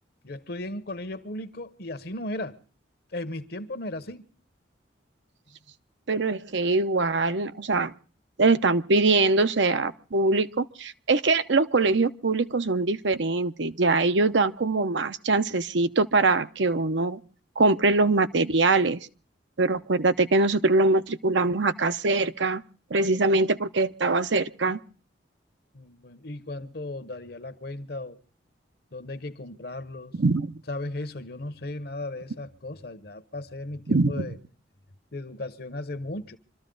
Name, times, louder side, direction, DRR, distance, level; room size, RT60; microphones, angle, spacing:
voice 1, 0.2-2.6 3.1-4.3 25.7-28.2 28.9-30.1 30.7-34.4 35.1-36.4, left 2 dB, 55° left, 1.0 m, -36 dB
voice 2, 6.1-7.9 8.4-17.2 17.6-19.0 19.6-22.6 22.9-24.8 30.2-30.5 33.9-34.3, right 3 dB, 70° right, 0.8 m, -23 dB
25.5 x 13.5 x 3.9 m
head